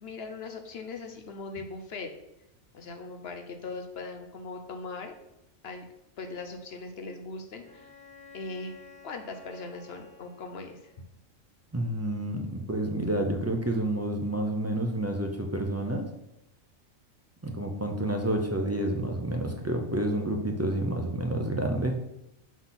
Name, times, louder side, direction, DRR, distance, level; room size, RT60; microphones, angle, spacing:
voice 1, 0.0-2.1 2.7-5.1 5.6-5.9 6.2-7.9 8.3-8.7 9.0-10.9, left 3 dB, 55° left, 5 dB, 1.0 m, -40 dB
Bowed string instrument, 7.6-11.1, left 5 dB, 75° left, 2.4 m, -52 dB
voice 2, 11.7-16.1 17.4-22.0, right 1 dB, 25° right, 3 dB, 0.3 m, -29 dB
6.0 x 4.0 x 5.8 m, 0.86 s
omnidirectional pair, 1.4 m